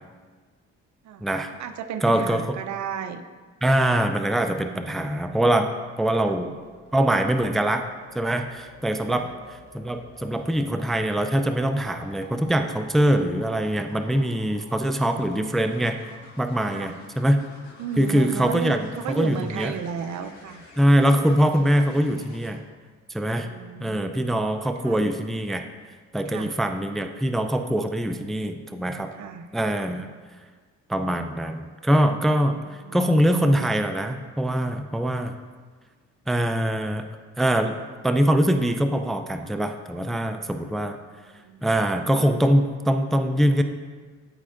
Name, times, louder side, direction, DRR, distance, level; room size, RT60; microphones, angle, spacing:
voice 1, 1.0-3.2 6.2-6.4 9.1-9.3 16.7-16.9 17.8-20.6 23.3-24.3 24.8-25.0 26.3-26.5 29.1-29.5 29.8-30.0 32.5-33.1 41.3-41.7, right 7 dB, 70° right, 9 dB, 0.6 m, -34 dB
voice 2, 2.0-2.6 3.6-5.7 6.0-6.5 6.9-7.9 8.1-9.3 9.7-16.0 16.4-17.4 18.0-19.7 20.8-22.6 23.1-23.5 23.8-25.7 26.1-29.1 29.5-30.1 30.9-35.4 36.3-37.0 37.4-37.8 38.0-41.0 41.6-43.6, right 1 dB, ahead, 7 dB, 0.3 m, -23 dB
sound 1, 6.4-22.5 24.4-24.7, left 2 dB, 65° left, 1.7 m, -49 dB
12.0 x 4.3 x 2.5 m, 1.4 s
cardioid pair, 90°, 30 cm